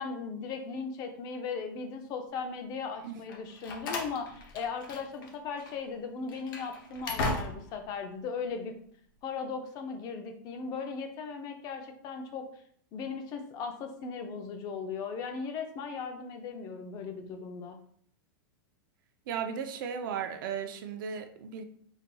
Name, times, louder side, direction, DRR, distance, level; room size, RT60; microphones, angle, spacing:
voice 1, 0.0-8.7 9.2-12.5 12.9-17.8, left 5 dB, 35° left, 6 dB, 0.5 m, -37 dB
Slam, 3.3-5.3 5.6-5.8 6.3-7.9, left 2 dB, 70° left, 0.8 m, -36 dB
voice 2, 19.3-21.6, right 7 dB, 65° right, 7 dB, 0.5 m, -35 dB
4.1 x 2.8 x 2.2 m, 0.62 s
supercardioid pair, 145°, 12 cm